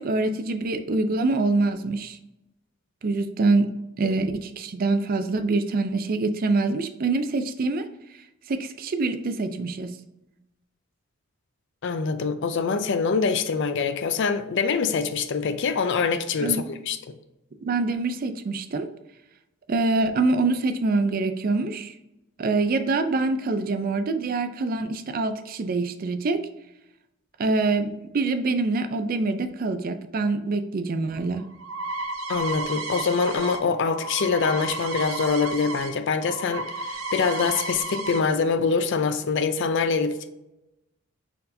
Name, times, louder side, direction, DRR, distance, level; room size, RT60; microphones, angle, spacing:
voice 1, 0.0-2.2 3.0-3.7 4.0-7.9 8.5-10.0 16.4-16.7 17.6-18.9 19.7-21.9 22.4-26.4 27.4-27.9 28.1-31.4, right 3 dB, 40° right, 0.4 m, -25 dB
voice 2, 11.8-17.1 32.3-40.3, left 5 dB, 55° left, 0.4 m, -24 dB
sound 1, 31.1-35.9 36.2-38.2, right 2 dB, 75° right, 0.7 m, -32 dB
4.2 x 4.1 x 2.6 m
head